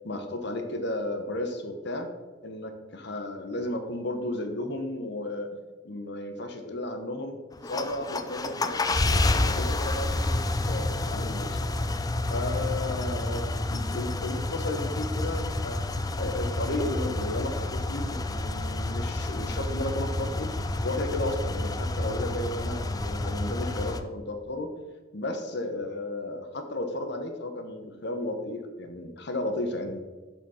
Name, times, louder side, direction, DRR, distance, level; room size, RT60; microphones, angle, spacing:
voice 1, 0.0-2.1 2.4-5.5 5.8-7.4 7.6-10.4 10.7-11.6 12.3-15.8 16.2-20.5 20.8-24.7 25.1-30.0, left 1 dB, 60° left, 6 dB, 1.1 m, -33 dB
sound 1, 7.5-24.0, left 2 dB, 20° left, 0.4 m, -29 dB
7.0 x 5.7 x 5.7 m, 1.3 s
head